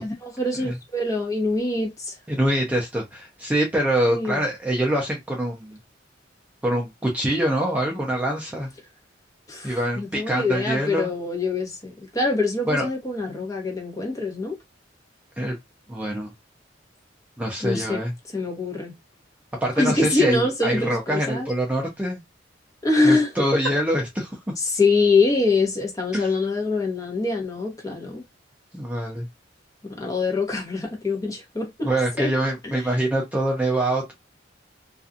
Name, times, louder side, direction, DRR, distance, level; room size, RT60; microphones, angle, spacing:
voice 1, 0.0-2.1 4.1-4.4 9.5-14.6 17.6-18.0 18.3-18.9 19.8-21.5 22.8-23.3 24.6-28.2 29.8-31.9 32.2-32.3 32.6-32.7, left 3 dB, 20° left, 0.9 m, -24 dB
voice 2, 2.3-5.8 6.6-8.7 9.6-11.1 12.7-12.9 15.4-15.6 15.9-16.3 17.4-18.1 19.6-22.2 23.0-24.4 26.1-26.3 28.7-29.3 31.8-34.1, right 1 dB, 10° right, 0.5 m, -24 dB
2.4 x 2.3 x 2.5 m
head